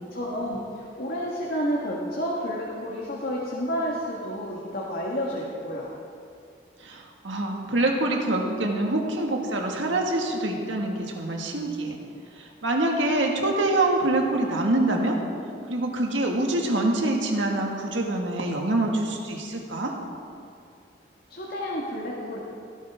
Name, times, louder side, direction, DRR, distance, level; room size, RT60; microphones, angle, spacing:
voice 1, 0.1-5.9 21.3-22.4, equal, 55° left, -4 dB, 1.5 m, -30 dB
voice 2, 6.8-12.0 12.3-15.2 15.7-19.9, right 2 dB, 85° right, 1 dB, 1.7 m, -25 dB
16.5 x 11.5 x 3.5 m, 2.4 s
head